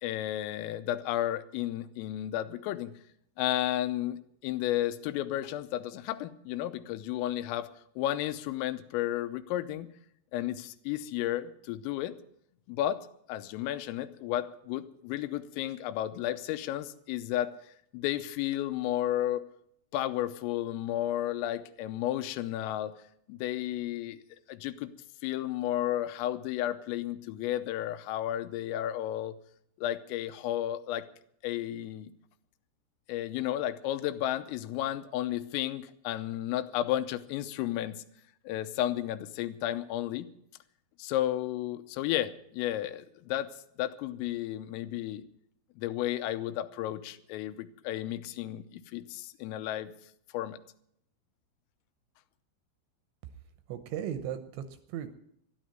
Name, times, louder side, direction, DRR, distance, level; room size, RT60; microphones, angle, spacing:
voice 1, 0.0-2.9 3.4-9.9 10.3-12.1 12.7-19.4 19.9-22.9 23.3-24.2 24.5-24.9 25.2-29.4 29.8-31.0 31.4-32.1 33.1-38.0 38.4-40.3 41.0-45.2 45.8-49.9 50.3-50.6, left 13 dB, 85° left, 12 dB, 3.4 m, -33 dB
voice 2, 53.7-55.1, right 9 dB, 80° right, 10 dB, 2.9 m, -37 dB
13.0 x 11.5 x 9.0 m, 0.71 s
omnidirectional pair, 5.8 m